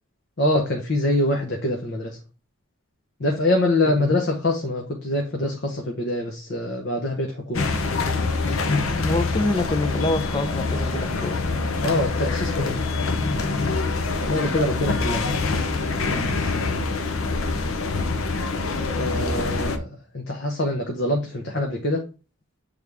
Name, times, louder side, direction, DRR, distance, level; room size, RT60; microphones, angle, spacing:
voice 1, 0.4-2.2 3.2-7.6 11.8-12.8 14.3-15.3 19.0-19.9 20.1-22.0, left 1 dB, 55° left, 2 dB, 0.9 m, -24 dB
sound 1, 7.5-19.8, left 3 dB, 80° left, 0.8 m, -25 dB
voice 2, 9.0-11.4, left 2 dB, 20° left, 9 dB, 0.6 m, -26 dB
7.8 x 3.6 x 3.5 m, 0.34 s
head